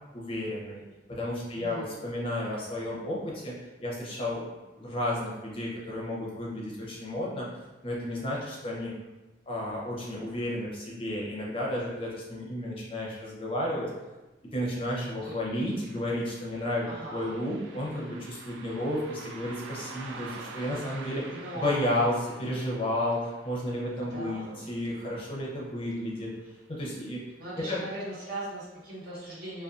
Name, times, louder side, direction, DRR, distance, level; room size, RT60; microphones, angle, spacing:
voice 1, 0.1-0.8 1.1-3.6 3.8-4.4 4.8-7.5 7.8-8.9 9.5-13.9 14.5-26.3 26.7-27.2 27.6-27.8, left 1 dB, 30° left, -4 dB, 0.5 m, -32 dB
voice 2, 1.6-2.1 15.2-15.4 16.9-17.4 21.3-21.7 24.1-24.7 27.4-29.6, right 1 dB, 55° right, -8 dB, 1.1 m, -39 dB
Car passing by, 15.7-26.5 26.8-26.9 27.8-28.0 28.5-28.6 29.1-29.2, right 3 dB, 80° right, 0.3 m, -47 dB
2.5 x 2.2 x 2.3 m, 1.1 s
head